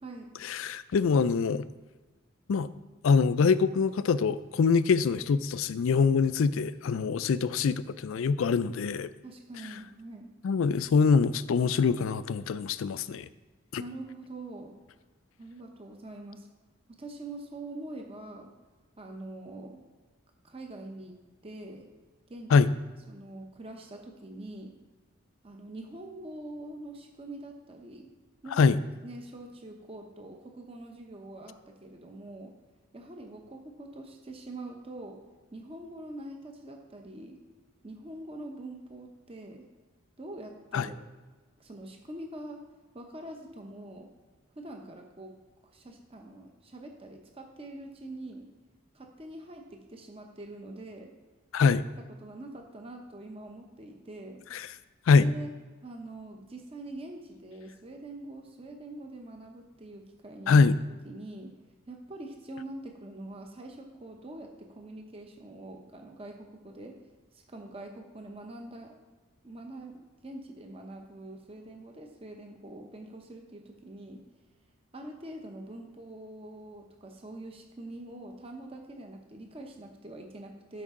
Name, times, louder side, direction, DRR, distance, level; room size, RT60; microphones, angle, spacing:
voice 1, 0.4-1.6 2.5-2.7 3.0-9.1 10.4-13.3 13.7-13.8 22.5-22.7 28.6-28.8 40.7-40.9 51.5-51.8 54.5-54.7 55.1-55.2 60.5-60.7, left 5 dB, 70° left, 15 dB, 0.4 m, -24 dB
voice 2, 9.2-10.3 13.8-14.7 15.4-16.5 16.9-18.5 19.0-19.8 20.4-21.1 21.4-21.9 22.3-22.7 23.1-24.7 25.4-28.1 28.4-32.5 32.9-35.2 35.5-37.4 37.8-39.7 40.2-41.0 41.6-42.6 42.9-44.1 44.6-45.3 45.7-48.5 48.9-51.1 51.6-51.8 52.2-54.4 55.2-55.5 55.8-60.6 61.0-61.5 61.9-67.0 67.3-69.0 69.4-74.2 74.9-80.8, right 1 dB, 25° right, 3 dB, 0.8 m, -44 dB
12.5 x 5.4 x 3.7 m, 1.3 s
head